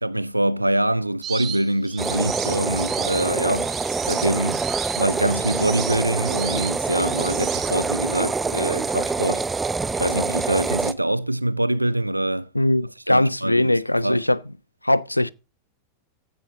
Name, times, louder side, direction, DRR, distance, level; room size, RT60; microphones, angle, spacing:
voice 1, 0.0-4.7 5.0-9.4 10.0-12.5 13.1-14.2, right 1 dB, 85° right, 0.5 m, -24 dB
sound 1, 1.2-8.1, right 9 dB, 30° right, 2.3 m, -34 dB
sound 2, 2.0-10.9, right 4 dB, 15° right, 0.7 m, -26 dB
voice 2, 12.5-14.4 14.8-15.3, left 1 dB, 85° left, 0.4 m, -20 dB
15.0 x 9.0 x 2.8 m
figure-of-eight pair, 90°, 0 cm